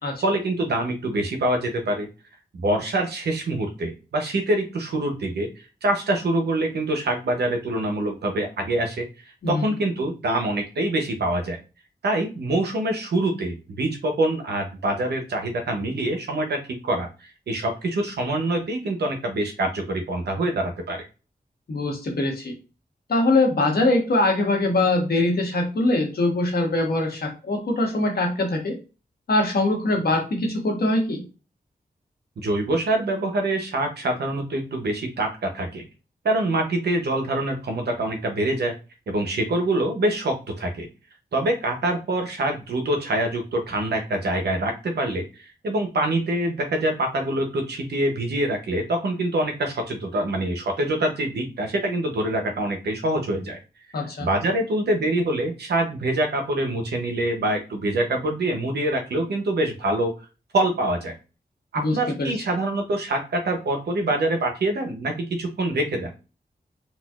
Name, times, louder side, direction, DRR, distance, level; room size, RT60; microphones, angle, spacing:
voice 1, 0.2-2.1 2.5-5.5 5.8-9.1 9.5-11.6 12.0-21.0 32.4-35.9 36.2-38.7 39.1-40.9 41.3-53.6 53.9-60.1 60.5-61.1 61.7-66.1, right 1 dB, 90° right, 4 dB, 0.7 m, -25 dB
voice 2, 9.4-9.7 21.7-22.5 23.1-28.8 29.3-31.2 53.9-54.3 61.7-62.3, left 2 dB, 70° left, 1 dB, 1.1 m, -22 dB
4.0 x 2.3 x 2.4 m, 0.32 s
wide cardioid pair, 85°, 17 cm